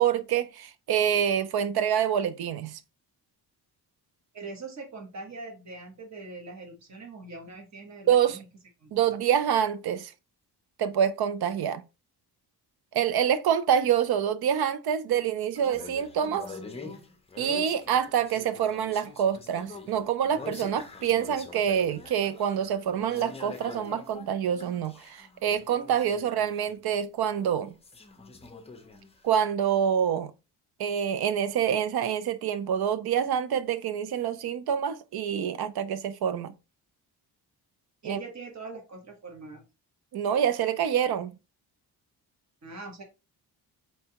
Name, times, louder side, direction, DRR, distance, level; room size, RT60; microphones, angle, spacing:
voice 1, 0.0-2.8 8.1-8.4 8.9-10.1 10.8-11.8 12.9-16.5 17.4-27.8 29.2-30.3 30.8-36.5 38.0-38.2 40.1-41.4, right 8 dB, 65° right, 0.5 m, -26 dB
voice 2, 4.3-8.4 8.8-9.0 38.0-39.6 42.6-43.0, right 3 dB, 40° right, 1.2 m, -42 dB
sound 1, 15.5-27.0 27.3-29.3, left 3 dB, 15° left, 0.5 m, -45 dB
4.6 x 3.3 x 2.8 m
wide cardioid pair, 160°, 41 cm